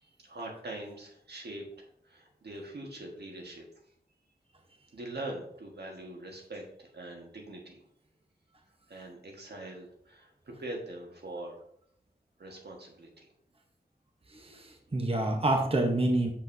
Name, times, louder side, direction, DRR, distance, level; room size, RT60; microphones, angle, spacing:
voice 1, 0.0-3.7 4.9-7.8 8.9-10.3 10.6-11.6 12.4-13.3, right 1 dB, 85° right, 0 dB, 1.4 m, -43 dB
voice 2, 14.3-16.3, right 2 dB, 35° right, 3 dB, 0.9 m, -28 dB
6.6 x 5.9 x 2.7 m, 0.67 s
wide cardioid pair, 75°, 17 cm